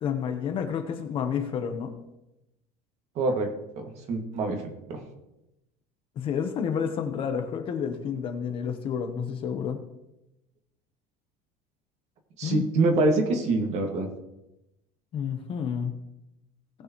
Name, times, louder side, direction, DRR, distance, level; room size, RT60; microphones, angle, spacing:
voice 1, 0.0-1.9 6.2-9.8 12.4-12.6 15.1-16.0, left 7 dB, 35° left, 6 dB, 1.0 m, -30 dB
voice 2, 3.2-3.5 3.8-4.6 4.9-5.0 12.4-14.1, right 2 dB, 45° right, 3 dB, 2.0 m, -25 dB
19.0 x 6.8 x 3.1 m, 0.91 s
cardioid pair, 170°, 16 cm